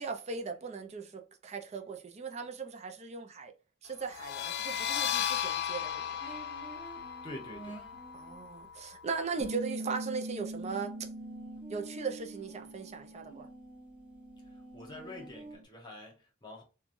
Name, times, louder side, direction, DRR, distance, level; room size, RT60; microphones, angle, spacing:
voice 1, 0.0-3.5 3.8-6.2 8.1-11.1 11.7-13.5, right 5 dB, 35° right, 0.5 m, -38 dB
sound 1, 4.1-9.5, left 9 dB, 55° left, 0.3 m, -36 dB
sound 2, 6.2-8.5 10.5-15.6, right 2 dB, 5° right, 1.0 m, -50 dB
voice 2, 7.2-7.8 14.5-16.6, left 1 dB, 25° left, 1.0 m, -47 dB
Bass guitar, 9.4-13.7 14.0-15.6, right 1 dB, 85° right, 0.5 m, -43 dB
3.1 x 2.2 x 2.5 m
head